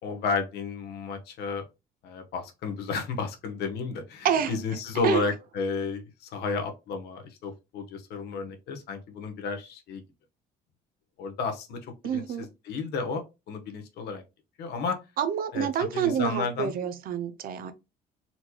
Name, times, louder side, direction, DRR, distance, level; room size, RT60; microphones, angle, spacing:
voice 1, 0.0-1.6 2.0-10.0 11.2-14.2 14.6-15.0 15.5-15.7 15.9-16.7, left 4 dB, 75° left, 1.1 m, -32 dB
voice 2, 12.0-12.5 15.2-17.7, right 8 dB, 60° right, 0.6 m, -27 dB
4.3 x 3.0 x 2.2 m
cardioid pair, 110°, 17 cm